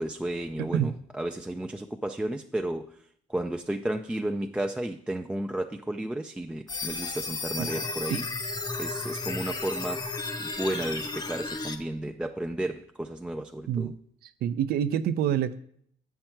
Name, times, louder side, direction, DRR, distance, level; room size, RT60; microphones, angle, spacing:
voice 1, 0.0-3.0 3.3-8.2 8.8-10.0 10.4-13.9, right 1 dB, 5° right, 3 dB, 0.3 m, -33 dB
voice 2, 0.6-0.9 7.6-7.7 8.1-8.2 13.7-13.9 14.4-15.6, right 9 dB, 65° right, 12 dB, 0.5 m, -27 dB
sound 1, 6.7-11.8, left 3 dB, 25° left, 0.7 m, -33 dB
7.6 x 5.8 x 4.5 m, 0.66 s
cardioid pair, 110°, 17 cm